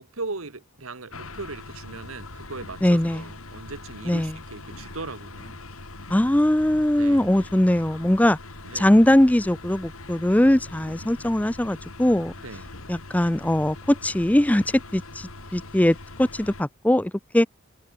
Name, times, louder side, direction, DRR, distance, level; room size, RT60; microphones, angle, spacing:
voice 1, 0.0-5.6 7.0-7.5 8.7-9.0 12.4-12.7, right 3 dB, 75° right, 1.9 m, -38 dB
sound 1, 1.1-16.6, left 2 dB, 80° left, 4.7 m, -42 dB
voice 2, 2.8-3.2 4.1-4.3 6.1-8.4 8.7-12.3 12.9-14.6 14.9-17.5, left 1 dB, 5° left, 0.4 m, -21 dB
head